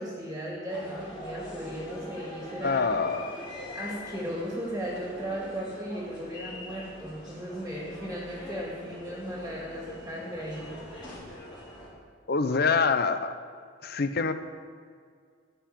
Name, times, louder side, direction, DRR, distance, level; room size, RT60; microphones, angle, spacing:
voice 1, 0.0-2.9 3.7-10.7, equal, 10° right, -4 dB, 2.3 m, -36 dB
sound 1, 0.7-11.9, left 1 dB, 25° left, 3.8 m, -43 dB
voice 2, 2.6-3.4 12.3-13.3 13.8-14.3, left 4 dB, 55° left, 10 dB, 0.7 m, -25 dB
14.5 x 5.8 x 8.8 m, 2.1 s
head